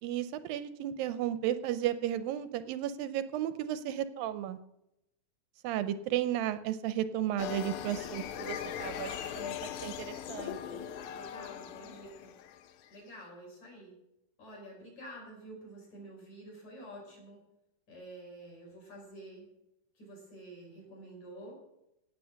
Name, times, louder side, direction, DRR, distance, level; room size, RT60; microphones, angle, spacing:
voice 1, 0.0-4.6 5.6-10.9, right 11 dB, 80° right, 12 dB, 2.2 m, -34 dB
sound 1, 7.4-12.9, left 9 dB, 75° left, 1.8 m, -40 dB
voice 2, 11.1-12.4 12.9-14.0 14.4-17.4 17.9-19.5 19.9-21.6, right 1 dB, 45° left, -1 dB, 6.5 m, -49 dB
17.5 x 8.3 x 6.4 m, 0.83 s
omnidirectional pair, 4.5 m